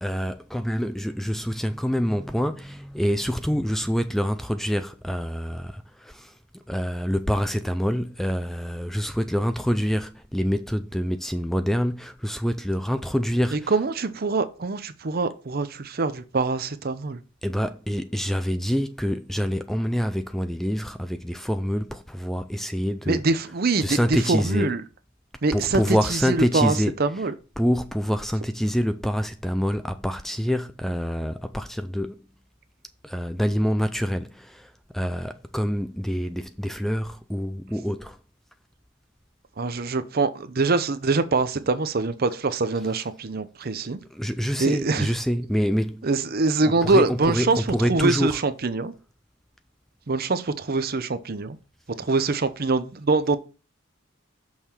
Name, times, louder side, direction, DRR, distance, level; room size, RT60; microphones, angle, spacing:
voice 1, 0.0-6.3 6.7-13.7 17.4-23.2 23.8-24.7 25.5-26.9 27.6-32.2 33.0-38.2 44.1-46.1 46.8-48.4, equal, ahead, 0.3 m, -26 dB
voice 2, 13.5-17.2 23.1-24.8 25.4-27.3 39.6-44.0 44.6-45.1 46.0-48.9 50.1-51.6 52.0-53.4, right 3 dB, 50° right, 0.7 m, -24 dB
6.4 x 5.6 x 4.4 m
head